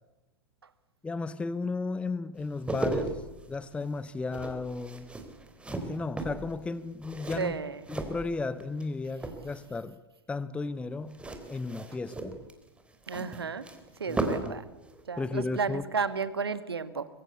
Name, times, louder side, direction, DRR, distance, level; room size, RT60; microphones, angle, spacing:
voice 1, 1.0-3.2 3.5-5.1 5.7-7.6 7.9-10.0 10.3-11.2 11.5-12.4 14.1-14.5 15.2-15.8, left 3 dB, 10° left, 16 dB, 0.8 m, -34 dB
sound 1, 2.4-8.9 9.1-9.8 11.1-14.6 14.8-15.0, right 2 dB, 10° right, 3.8 m, -36 dB
voice 2, 7.4-7.8 13.1-13.7 14.0-14.6 15.1-17.1, right 5 dB, 70° right, 13 dB, 1.8 m, -32 dB
24.5 x 24.0 x 8.3 m, 1.0 s
figure-of-eight pair, 95°, 13 cm